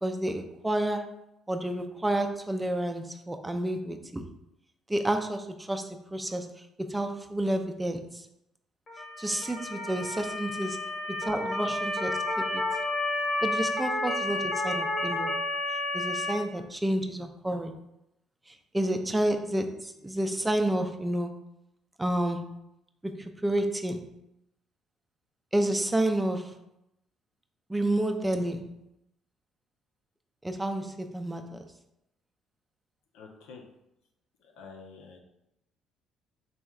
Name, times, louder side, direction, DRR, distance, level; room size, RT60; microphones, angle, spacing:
voice 1, 0.0-1.2 1.5-4.2 4.9-6.5 6.9-8.3 9.2-10.8 11.2-12.2 12.5-12.6 13.4-15.3 15.9-17.8 18.5-21.4 22.0-22.5 23.0-24.1 25.5-26.5 27.7-28.7 30.4-31.6, right 1 dB, 10° right, 5 dB, 0.5 m, -30 dB
Motor vehicle (road) / Siren, 8.9-16.3, left 2 dB, 45° left, 1.3 m, -31 dB
voice 2, 33.1-33.6 34.4-35.2, left 4 dB, 85° left, 2 dB, 0.7 m, -48 dB
4.2 x 3.5 x 2.3 m, 0.85 s
supercardioid pair, 80°, 0 cm